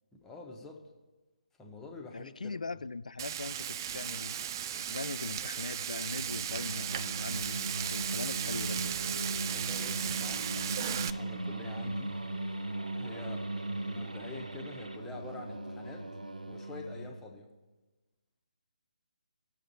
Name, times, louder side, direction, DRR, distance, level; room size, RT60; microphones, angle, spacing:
voice 1, 0.1-0.8 1.6-2.8 9.5-12.2 12.9-13.5 13.9-16.1 16.5-17.5, left 3 dB, 10° left, 1 dB, 0.9 m, -47 dB
voice 2, 2.1-4.5 4.8-9.0, left 3 dB, 70° left, 15 dB, 0.4 m, -41 dB
Frying (food), 3.2-11.1, right 10 dB, 30° right, 0.3 m, -36 dB
Singing, 6.1-17.3, right 2 dB, 85° right, 0.6 m, -38 dB
sound 1, 7.3-15.0, right 1 dB, 70° right, 1.1 m, -52 dB
18.0 x 6.6 x 2.7 m, 1.2 s
figure-of-eight pair, 145°, 4 cm